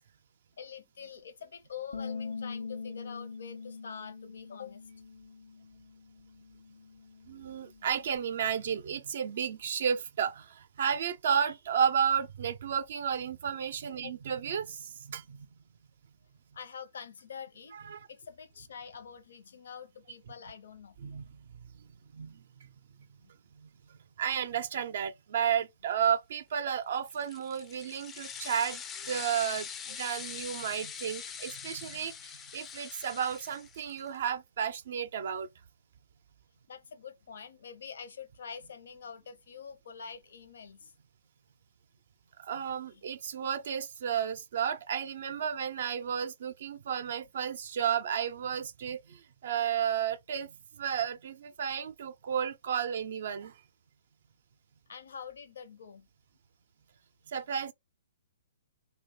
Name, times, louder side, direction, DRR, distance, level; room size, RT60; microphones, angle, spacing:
voice 1, 0.6-4.9 14.0-14.1 16.5-17.8 18.1-21.0 23.2-23.3 29.0-29.2 31.9-32.0 36.7-40.9 42.9-43.0 54.9-56.1, left 7 dB, 70° left, 0.6 m, -46 dB
Bass guitar, 1.9-8.2, left 4 dB, 85° left, 1.0 m, -43 dB
voice 2, 7.3-15.5 17.7-18.1 21.0-21.3 21.7-22.4 23.6-35.5 42.4-53.5 57.3-57.7, right 8 dB, 60° right, 0.3 m, -33 dB
sound 1, 27.1-34.1, left 7 dB, 20° left, 0.3 m, -43 dB
2.5 x 2.2 x 3.8 m
hypercardioid pair, 130°, 0 cm